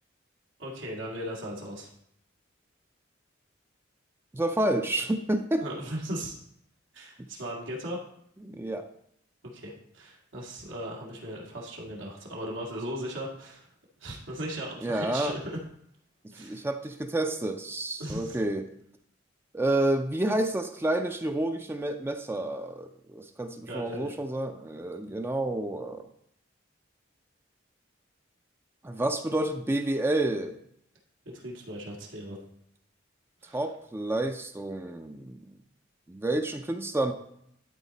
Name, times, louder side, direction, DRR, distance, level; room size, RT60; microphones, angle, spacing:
voice 1, 0.6-1.9 5.6-6.4 6.9-8.0 9.5-13.7 14.0-15.6 16.3-16.6 18.0-18.4 23.7-24.1 31.3-32.4 33.4-33.6, equal, 90° right, -2 dB, 2.0 m, -37 dB
voice 2, 4.3-5.6 7.2-7.3 8.4-8.9 14.8-15.4 16.3-18.7 19.5-26.0 28.8-30.6 33.5-35.5 36.1-37.1, right 1 dB, 10° right, 7 dB, 0.4 m, -29 dB
12.0 x 4.2 x 4.0 m, 0.73 s
head